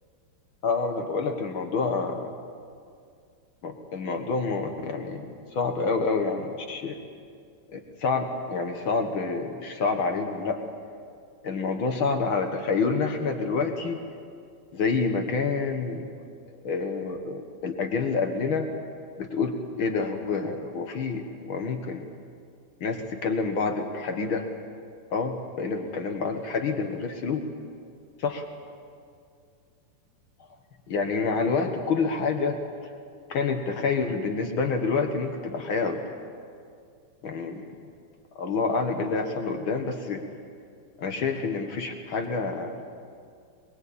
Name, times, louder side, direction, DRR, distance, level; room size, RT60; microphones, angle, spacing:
voice 1, 0.6-2.3 3.6-7.0 7.7-10.6 11.4-14.0 14.7-16.0 16.6-18.7 19.2-22.1 22.8-24.5 25.1-27.4 28.2-28.5 30.9-32.6 33.3-36.2 37.2-37.6 38.3-40.2 41.0-42.8, left 4 dB, 80° left, 4 dB, 1.1 m, -28 dB
24.5 x 22.0 x 8.6 m, 2.3 s
omnidirectional pair, 4.7 m